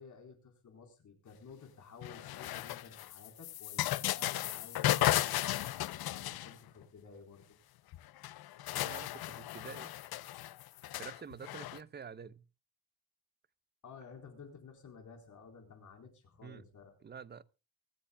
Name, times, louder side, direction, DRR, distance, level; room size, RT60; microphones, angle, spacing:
voice 1, 0.0-7.6 13.8-16.9, left 5 dB, 55° left, 4.1 m, -53 dB
sound 1, 2.0-6.8 7.9-8.0 8.2-11.8, left 14 dB, 90° left, 0.7 m, -35 dB
voice 2, 8.7-10.0 11.0-12.4 16.4-16.6 17.0-17.4, right 6 dB, 30° right, 0.7 m, -48 dB
24.0 x 13.0 x 2.2 m
wide cardioid pair, 150°, 36 cm